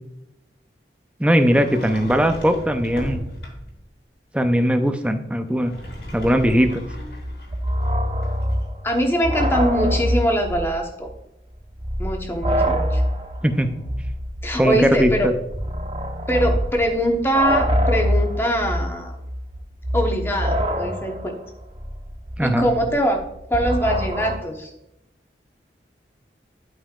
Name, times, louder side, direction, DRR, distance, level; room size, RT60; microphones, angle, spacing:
voice 1, 1.2-3.2 4.3-5.7 6.1-6.8 13.4-13.7 14.6-15.3 22.4-22.6, equal, 5° right, 7 dB, 0.6 m, -19 dB
Sliding door, 1.3-3.9 5.5-8.7, equal, 80° left, 2.6 m, -37 dB
sound 1, 5.9-10.8 11.1-11.2 11.7-24.4, equal, 30° right, 0.9 m, -25 dB
voice 2, 8.8-11.1 12.0-13.0 14.4-15.3 16.3-19.2 19.9-21.4 22.4-23.2 23.5-24.7, equal, 15° left, 2 dB, 1.1 m, -22 dB
11.5 x 5.5 x 2.4 m, 0.86 s
head